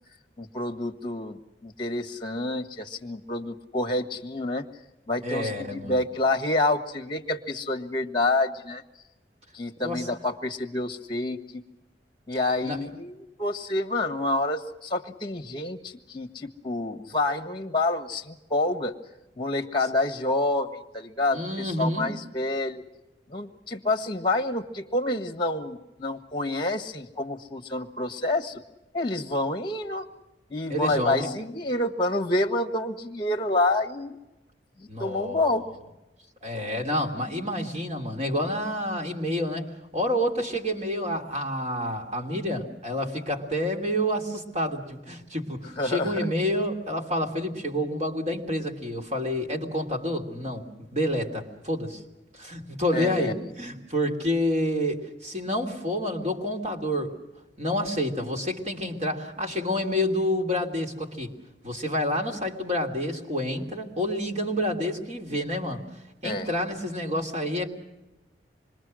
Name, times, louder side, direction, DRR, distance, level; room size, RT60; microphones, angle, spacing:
voice 1, 0.4-4.7 5.1-8.8 9.5-11.6 12.3-18.9 19.4-22.8 23.3-28.6 28.9-30.1 30.5-34.2 34.8-35.7 45.8-46.3 52.9-53.3 66.2-66.5, left 2 dB, 25° left, 9 dB, 1.5 m, -28 dB
voice 2, 5.2-5.9 9.8-10.1 12.6-12.8 21.3-22.1 30.7-31.3 34.9-35.5 36.4-52.0 52.3-57.2 57.6-61.3 61.6-65.8 66.2-67.7, left 1 dB, 40° right, 2 dB, 3.0 m, -28 dB
26.0 x 22.5 x 6.3 m, 1.0 s
head